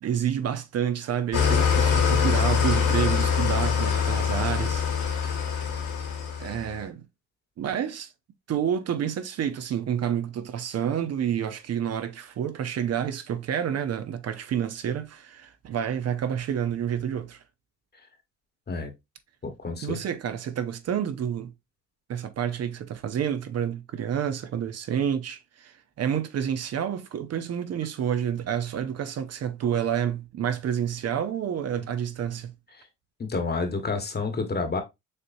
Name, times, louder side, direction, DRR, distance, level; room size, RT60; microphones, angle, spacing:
voice 1, 0.0-5.3 6.4-7.0 7.6-8.1 8.5-17.4 19.8-21.5 22.1-32.5, right 9 dB, 55° right, 0.7 m, -29 dB
Engine starting / Idling, 1.3-6.7, left 6 dB, 80° left, 2.2 m, -24 dB
voice 2, 19.4-20.0 33.2-34.8, left 4 dB, 35° left, 1.3 m, -29 dB
6.6 x 2.9 x 2.6 m
cardioid pair, 90°, 30 cm